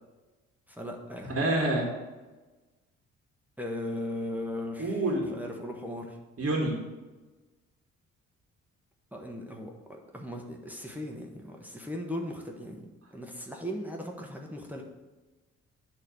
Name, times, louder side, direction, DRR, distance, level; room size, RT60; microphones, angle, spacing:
voice 1, 0.7-1.4 3.6-5.0 5.3-6.2 9.1-14.8, left 1 dB, 5° right, 0 dB, 1.2 m, -38 dB
voice 2, 1.3-1.9 4.8-5.3 6.4-6.8, right 1 dB, 35° right, -2 dB, 1.8 m, -27 dB
8.6 x 3.2 x 6.3 m, 1.2 s
hypercardioid pair, 45°, 39 cm